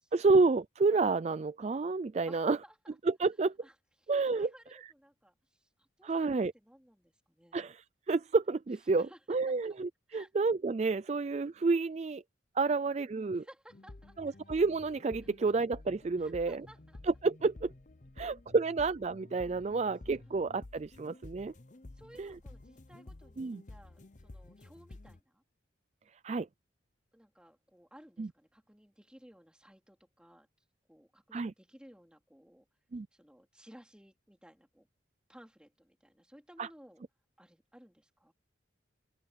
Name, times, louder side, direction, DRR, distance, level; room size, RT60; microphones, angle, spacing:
voice 1, 0.1-2.6 3.1-3.5 4.1-4.5 6.0-6.5 7.5-12.2 12.6-13.4 14.2-16.6 17.2-17.7 18.2-21.5 22.2-22.3 23.4-23.6 26.2-26.5 28.2-28.3 31.3-31.5 32.9-33.1 36.6-36.7, right 3 dB, 35° right, 0.3 m, -30 dB
voice 2, 2.3-3.0 3.6-7.6 9.0-9.2 9.6-9.7 10.1-10.3 12.7-13.0 13.3-14.4 16.2-17.0 20.2-20.4 21.9-25.4 27.1-30.5 30.9-32.7 33.1-34.9 35.3-37.0 37.4-38.3, equal, 5° right, 3.9 m, -58 dB
sound 1, 13.7-25.2, left 2 dB, 40° left, 0.8 m, -52 dB
open air
head